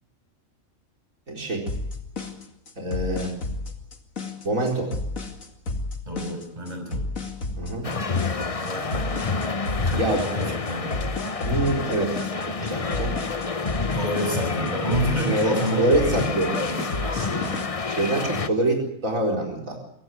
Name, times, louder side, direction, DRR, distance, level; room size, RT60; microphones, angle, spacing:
voice 1, 1.3-1.6 2.8-3.3 4.4-4.9 7.6-7.9 10.0-10.3 11.4-12.2 12.4-13.1 15.3-16.8 17.0-17.5 17.9-19.8, right 1 dB, 85° right, 1 dB, 4.7 m, -25 dB
sound 1, 1.7-17.7, left 2 dB, 85° left, 2.8 m, -32 dB
voice 2, 6.1-7.0 8.5-9.2 9.8-11.2 13.9-15.9 16.2-16.9, right 1 dB, 30° right, 4 dB, 6.6 m, -29 dB
sound 2, 7.8-18.5, left 4 dB, 30° left, 0.9 m, -29 dB
24.0 x 17.0 x 9.5 m, 0.75 s
omnidirectional pair, 1.4 m